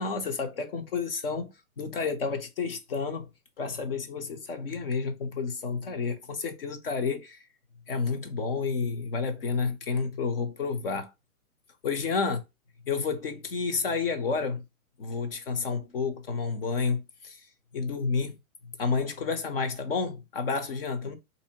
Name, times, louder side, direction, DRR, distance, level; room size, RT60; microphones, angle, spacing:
voice 1, 0.0-3.3 3.6-7.4 7.9-11.1 11.8-12.4 12.8-14.6 15.0-17.4 17.7-18.4 18.8-21.2, left 4 dB, 40° left, 0.7 m, -30 dB
3.8 x 2.7 x 2.8 m
hypercardioid pair, 170°, 45 cm